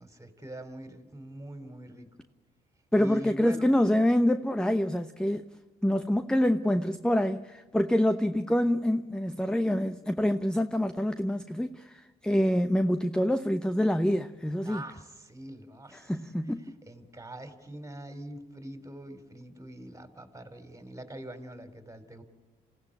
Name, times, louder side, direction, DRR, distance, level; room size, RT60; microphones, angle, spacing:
voice 1, 0.0-2.1 3.0-3.7 14.7-16.1 16.9-22.2, right 1 dB, 15° right, 3.7 m, -43 dB
voice 2, 2.9-5.4 5.8-14.8 15.9-16.6, left 1 dB, 5° left, 0.9 m, -26 dB
28.0 x 16.0 x 8.6 m
hypercardioid pair, 50°, 20 cm